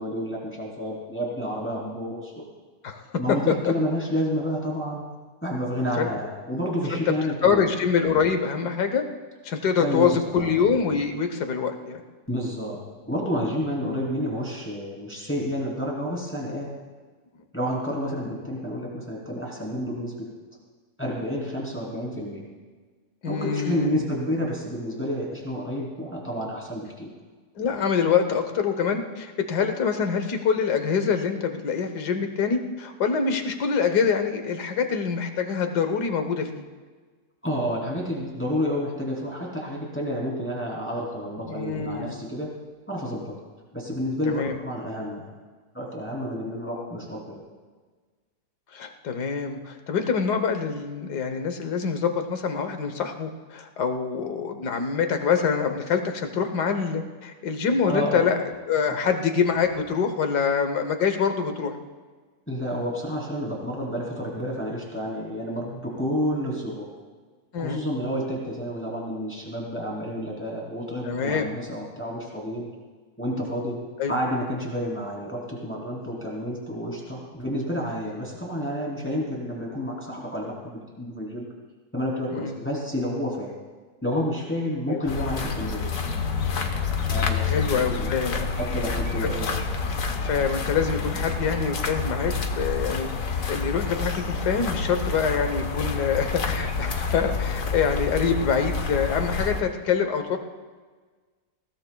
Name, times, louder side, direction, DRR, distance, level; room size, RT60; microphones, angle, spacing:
voice 1, 0.0-2.3 3.2-5.0 5.4-7.7 9.8-10.6 12.3-12.8 13.1-16.7 17.5-20.3 21.0-22.5 23.2-27.1 37.4-42.5 42.9-43.4 43.7-45.3 45.7-47.4 57.8-58.2 62.5-67.0 67.6-72.7 73.2-81.5 81.9-83.5 84.0-85.9 87.0-88.2 88.5-89.6, equal, 5° left, -3 dB, 3.1 m, -30 dB
voice 2, 7.4-9.0 9.4-12.0 13.8-14.1 23.2-24.0 27.6-36.5 41.4-42.1 44.2-44.5 48.7-58.4 58.7-61.7 67.5-67.8 71.0-71.5 74.0-74.2 82.3-82.6 84.9-85.0 87.4-88.5 89.2-89.3 90.2-100.4, left 6 dB, 90° left, 6 dB, 1.7 m, -25 dB
sound 1, 85.1-99.6, left 4 dB, 60° left, 1.4 m, -28 dB
20.0 x 17.5 x 2.3 m, 1.4 s
omnidirectional pair, 1.7 m